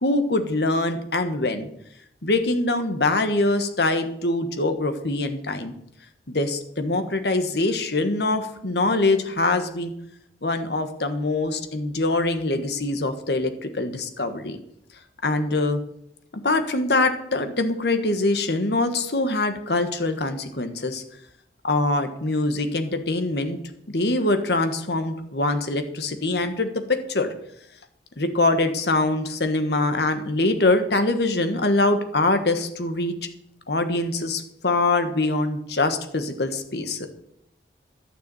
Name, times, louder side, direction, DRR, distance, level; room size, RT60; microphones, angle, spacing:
voice 1, 0.0-1.7 2.2-5.7 6.3-9.9 10.4-14.6 15.2-15.8 16.4-21.0 21.6-23.6 23.9-27.3 28.2-33.1 33.7-37.1, left 2 dB, 65° left, 8 dB, 1.4 m, -23 dB
12.0 x 6.9 x 7.6 m, 0.74 s
head